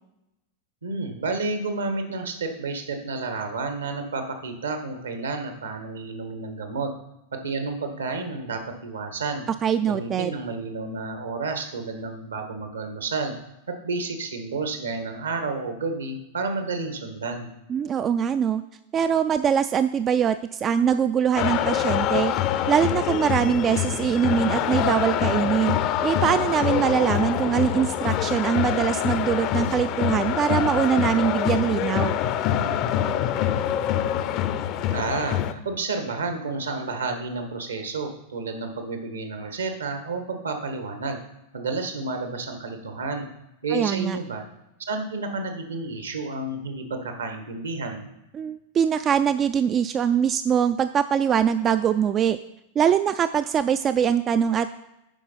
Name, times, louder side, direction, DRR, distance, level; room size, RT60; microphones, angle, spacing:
voice 1, 0.8-6.9 7.3-9.4 9.9-13.3 13.7-17.5 34.9-41.2 41.5-43.3 43.6-44.4 44.9-48.1, right 3 dB, 75° right, 6 dB, 1.6 m, -30 dB
voice 2, 9.6-10.3 17.7-18.6 18.9-22.3 22.7-25.8 26.0-32.2 43.7-44.2 48.3-52.4 52.8-54.7, right 8 dB, 30° right, 11 dB, 0.4 m, -23 dB
sound 1, 21.3-35.5, left 10 dB, 40° left, 0.6 m, -25 dB
9.1 x 5.3 x 5.7 m, 0.91 s
figure-of-eight pair, 90°, 0 cm